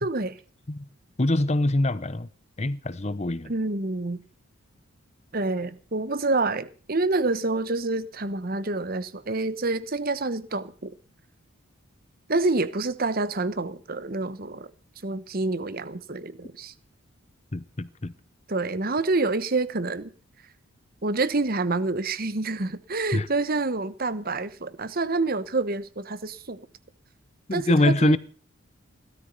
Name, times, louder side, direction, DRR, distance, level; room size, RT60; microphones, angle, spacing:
voice 1, 0.0-0.4 3.5-4.2 5.3-10.9 12.3-14.7 15.0-16.7 18.5-20.1 21.0-26.6 27.5-28.1, right 3 dB, 45° right, 1.0 m, -27 dB
voice 2, 1.2-2.3 2.6-3.5 17.5-18.1 23.1-23.3 27.5-28.2, left 2 dB, 30° left, 0.8 m, -24 dB
17.0 x 13.0 x 5.4 m
head